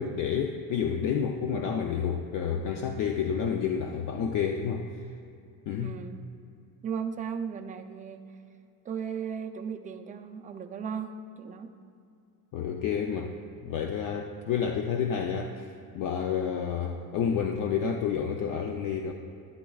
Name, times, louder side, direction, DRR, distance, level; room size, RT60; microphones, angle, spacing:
voice 1, 0.0-4.9 5.7-6.0 12.5-13.3 13.6-19.1, left 7 dB, 55° left, 4 dB, 0.5 m, -29 dB
voice 2, 5.8-6.2 6.8-8.2 8.8-11.7, right 7 dB, 20° right, 4 dB, 0.4 m, -36 dB
12.0 x 10.5 x 2.3 m, 2.5 s
cardioid pair, 145°, 40 cm